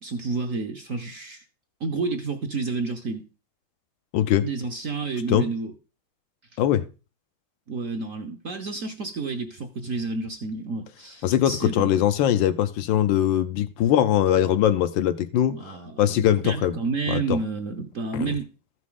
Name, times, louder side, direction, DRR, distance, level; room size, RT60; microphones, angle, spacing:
voice 1, 0.0-1.4 1.8-3.3 4.4-5.7 7.7-11.9 15.5-18.5, right 4 dB, 55° right, 0.9 m, -30 dB
voice 2, 4.1-4.5 5.3-5.5 6.6-6.9 11.2-16.8 17.1-17.4 18.1-18.3, left 11 dB, 75° left, 1.3 m, -22 dB
14.0 x 6.1 x 3.7 m
omnidirectional pair, 2.2 m